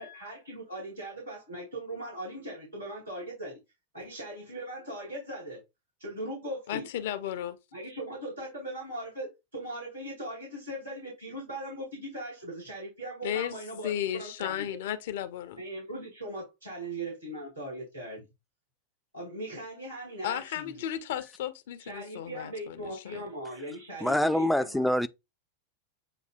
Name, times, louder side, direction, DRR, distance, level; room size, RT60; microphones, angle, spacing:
voice 1, 0.0-3.6 3.9-5.6 6.0-6.9 7.7-14.7 15.6-18.3 19.1-20.9 21.8-24.9, right 1 dB, 85° right, 2.5 m, -39 dB
voice 2, 6.7-7.6 13.2-13.5 13.8-15.6 20.2-23.3, left 10 dB, 55° left, 0.5 m, -34 dB
voice 3, 24.0-25.1, left 1 dB, 5° left, 0.3 m, -25 dB
7.6 x 2.6 x 2.4 m
figure-of-eight pair, 90°, 0 cm